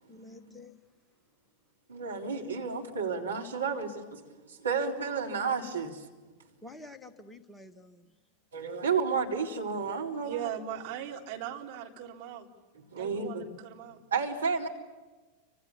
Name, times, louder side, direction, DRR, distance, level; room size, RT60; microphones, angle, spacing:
voice 1, 0.1-0.8 6.6-8.1, left 2 dB, 5° left, 1.4 m, -49 dB
voice 2, 1.9-6.1 8.5-10.5 12.7-13.5 14.1-14.7, right 5 dB, 75° right, 3.7 m, -32 dB
voice 3, 10.2-12.5 12.9-14.0, right 10 dB, 45° right, 3.8 m, -39 dB
29.5 x 26.0 x 7.2 m
figure-of-eight pair, 90°, 0 cm